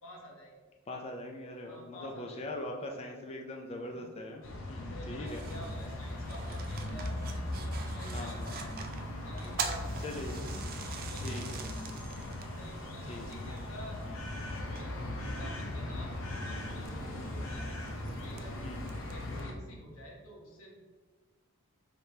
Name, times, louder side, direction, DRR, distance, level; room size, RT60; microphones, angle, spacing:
voice 1, 0.0-0.5 1.7-2.4 3.8-4.0 4.7-8.7 9.2-10.3 10.8-11.7 12.4-14.0 15.3-16.9 17.2-18.6 19.0-20.7, equal, 90° left, -1 dB, 1.1 m, -50 dB
voice 2, 0.9-4.4 4.7-5.4 8.1-8.5 10.0-10.5 11.2-11.5 13.1-13.3 14.0-14.2 18.6-18.9, left 1 dB, 30° left, 1 dB, 0.3 m, -41 dB
sound 1, 4.4-19.5, left 1 dB, 70° left, 0.7 m, -39 dB
sound 2, 5.3-19.4, right 6 dB, 45° right, 0.4 m, -46 dB
5.0 x 3.2 x 2.7 m, 1.4 s
head